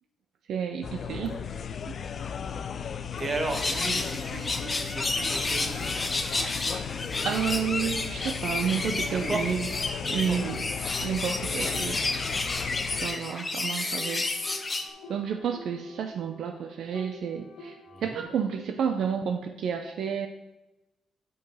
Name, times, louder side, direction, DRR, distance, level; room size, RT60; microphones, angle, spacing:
voice 1, 0.5-1.4 1.9-2.0 7.2-9.6 10.1-10.6 11.0-12.0 13.0-14.4 15.1-17.8 18.0-20.3, right 7 dB, 70° right, 5 dB, 0.5 m, -30 dB
sound 1, 0.8-13.1, left 7 dB, 55° left, 0.4 m, -36 dB
voice 2, 1.1-1.4 3.2-5.9 9.1-9.6 10.0-10.4 17.9-18.2, right 2 dB, 35° right, 4 dB, 1.6 m, -35 dB
sound 2, 3.5-14.9, left 2 dB, 30° left, 0.9 m, -31 dB
sound 3, 4.0-18.2, left 3 dB, 85° left, 1.6 m, -47 dB
7.1 x 4.7 x 5.4 m, 1.0 s
supercardioid pair, 60°, 0 cm